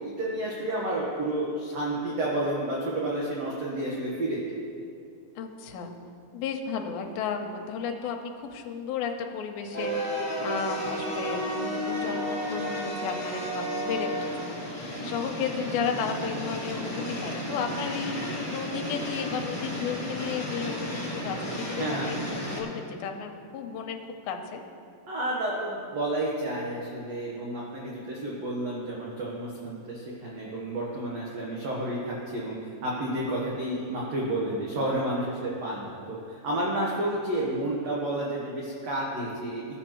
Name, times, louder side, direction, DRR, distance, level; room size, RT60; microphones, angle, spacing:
voice 1, 0.0-4.5 21.8-22.1 25.1-39.6, right 1 dB, 65° right, -5 dB, 1.7 m, -31 dB
voice 2, 5.4-5.9 6.3-24.6, left 6 dB, 85° left, 3 dB, 2.5 m, -34 dB
sound 1, 9.7-22.6, equal, 20° left, 0.7 m, -33 dB
16.5 x 7.0 x 3.0 m, 2.5 s
omnidirectional pair, 4.3 m